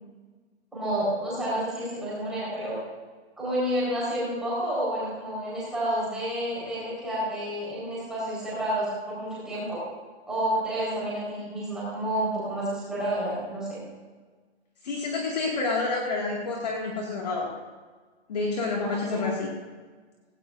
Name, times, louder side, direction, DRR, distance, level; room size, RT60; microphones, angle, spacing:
voice 1, 0.7-2.8 3.4-9.8 10.3-13.8 18.8-19.3, right 1 dB, ahead, -9 dB, 4.6 m, -30 dB
voice 2, 14.8-17.5 18.3-19.5, left 3 dB, 35° left, -2 dB, 2.2 m, -29 dB
18.0 x 17.5 x 2.6 m, 1.4 s
hypercardioid pair, 180°, 34 cm